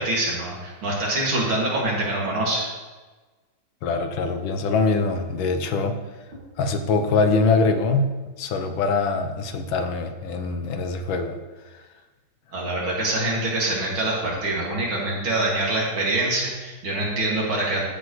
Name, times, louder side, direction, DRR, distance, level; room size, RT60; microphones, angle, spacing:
voice 1, 0.0-2.6 12.5-17.8, right 2 dB, 75° right, -4 dB, 3.1 m, -25 dB
voice 2, 3.8-6.0 6.6-8.1 8.4-11.4, left 4 dB, 75° left, 7 dB, 1.6 m, -23 dB
13.5 x 7.8 x 3.2 m, 1.3 s
omnidirectional pair, 2.3 m